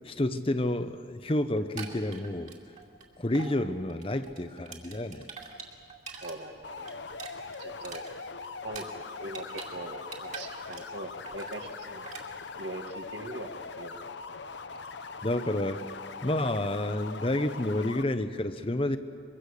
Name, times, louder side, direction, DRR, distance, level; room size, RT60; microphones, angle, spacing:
voice 1, 0.0-2.5 3.2-5.3 15.2-15.8 16.2-19.0, left 1 dB, 30° left, 10 dB, 0.8 m, -29 dB
sound 1, 1.6-3.0 3.3-3.5 3.9-6.3 6.7-9.7 10.0-11.0 11.2-11.6 12.0-12.2, right 5 dB, 40° right, 2.6 m, -44 dB
voice 2, 6.2-7.0 7.6-8.0 8.6-8.9 9.2-12.1 12.6-14.0, right 1 dB, 75° right, 4 dB, 2.0 m, -41 dB
sound 2, 6.6-18.0, left 4 dB, 70° left, 0.8 m, -41 dB
24.0 x 23.5 x 6.6 m, 2.3 s
head